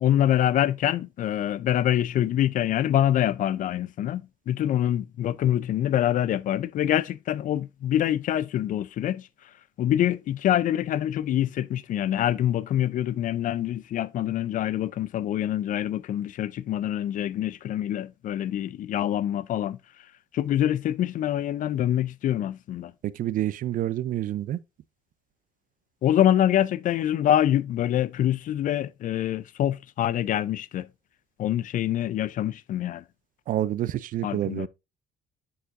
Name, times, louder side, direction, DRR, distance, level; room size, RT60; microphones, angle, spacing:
voice 1, 0.0-9.3 9.8-19.8 20.3-22.9 26.0-30.9 31.4-33.0 34.2-34.7, left 11 dB, 50° left, 0.4 m, -25 dB
voice 2, 23.0-24.6 33.5-34.7, right 12 dB, 55° right, 0.4 m, -28 dB
9.9 x 4.7 x 2.5 m
cardioid pair, 110°, 17 cm